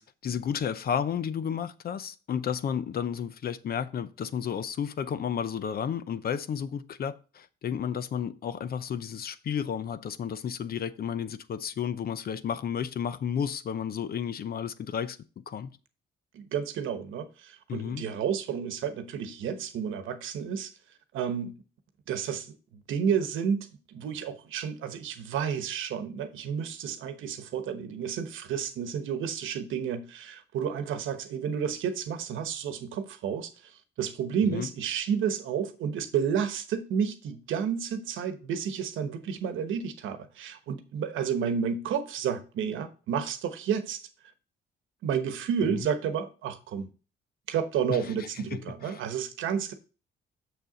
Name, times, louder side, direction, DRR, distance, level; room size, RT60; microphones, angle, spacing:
voice 1, 0.0-15.2 15.5-15.7 17.7-18.0 34.5-34.7 45.7-45.9 47.9-48.1 48.5-49.0, left 8 dB, 50° left, 0.6 m, -32 dB
voice 2, 16.3-20.7 21.1-21.5 22.1-44.0 45.0-46.9 47.5-49.7, right 7 dB, 80° right, 1.1 m, -31 dB
6.7 x 6.5 x 3.9 m
cardioid pair, 90°, 20 cm